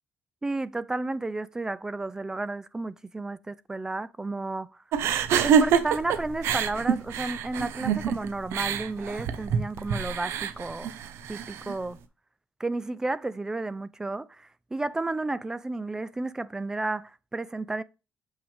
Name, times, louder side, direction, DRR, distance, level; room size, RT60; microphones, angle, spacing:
voice 1, 0.4-4.8 5.4-10.9 11.3-12.0 12.6-17.8, right 2 dB, 15° right, 0.3 m, -32 dB
sound 1, 4.9-11.7, right 7 dB, 80° right, 0.9 m, -26 dB
7.1 x 6.0 x 3.4 m
cardioid pair, 135°, 4 cm